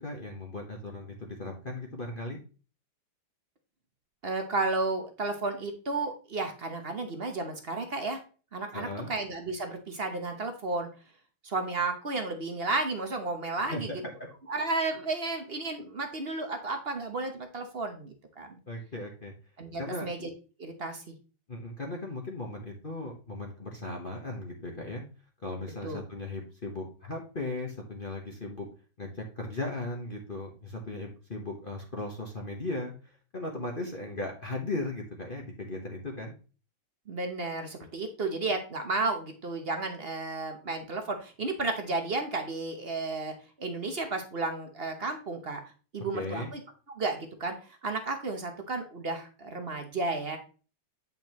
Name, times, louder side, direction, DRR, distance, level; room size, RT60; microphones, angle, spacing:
voice 1, 0.0-2.4 8.7-9.1 13.7-13.8 18.7-19.3 19.8-20.1 21.5-25.0 25.4-28.7 29.0-32.9 33.3-36.3 46.1-46.5, left 2 dB, 35° left, 0 dB, 1.1 m, -37 dB
voice 2, 4.2-8.2 8.5-10.9 11.4-13.9 14.5-18.6 19.6-20.3 20.6-21.1 25.8-26.0 37.1-45.6 45.9-46.6 46.9-50.4, right 3 dB, 45° right, 6 dB, 0.9 m, -33 dB
8.8 x 5.6 x 3.0 m, 0.35 s
omnidirectional pair, 2.1 m